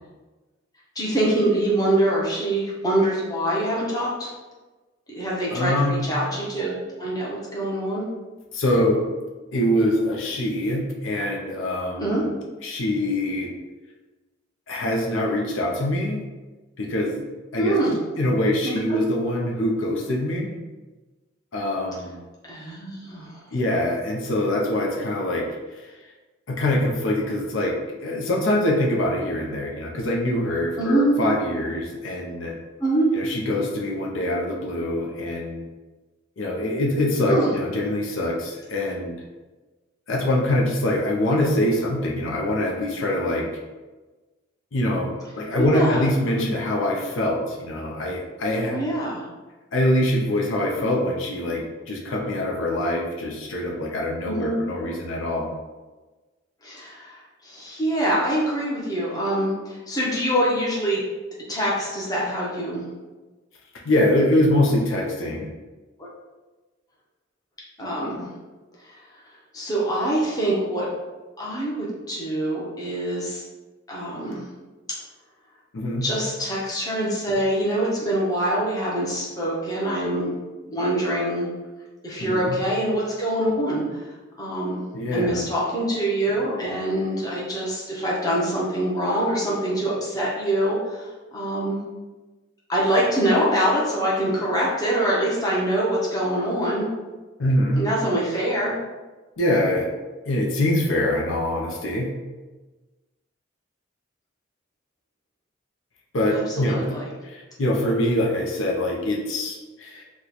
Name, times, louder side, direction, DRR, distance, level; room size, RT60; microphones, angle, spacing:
voice 1, 1.0-4.3 5.1-8.1 12.0-12.2 17.6-18.0 18.6-19.0 22.5-23.3 30.7-31.2 32.8-33.1 37.3-37.5 45.6-46.5 48.7-49.2 54.2-54.6 56.6-61.0 61.5-62.8 66.0-66.1 67.8-68.3 68.9-69.0 69.5-70.9 71.4-73.4 73.9-74.4 76.0-80.3 80.6-81.5 82.0-83.8 84.4-84.8 85.1-91.8 92.7-96.9 97.8-98.7 106.3-107.1, right 1 dB, 20° left, -5 dB, 0.7 m, -24 dB
voice 2, 5.5-6.0 8.5-9.0 9.5-12.2 12.6-13.5 14.7-16.2 16.8-17.2 17.5-17.8 18.2-20.6 21.5-22.2 23.5-25.5 26.5-32.5 33.1-35.6 36.4-39.2 40.1-43.5 44.7-48.7 49.7-55.5 63.8-65.5 75.7-76.1 82.2-82.6 84.9-85.5 97.4-97.8 99.4-99.9 100.3-102.1 106.1-106.8 107.2-110.0, left 1 dB, 85° left, -1 dB, 0.6 m, -24 dB
3.0 x 2.2 x 3.9 m, 1.2 s
head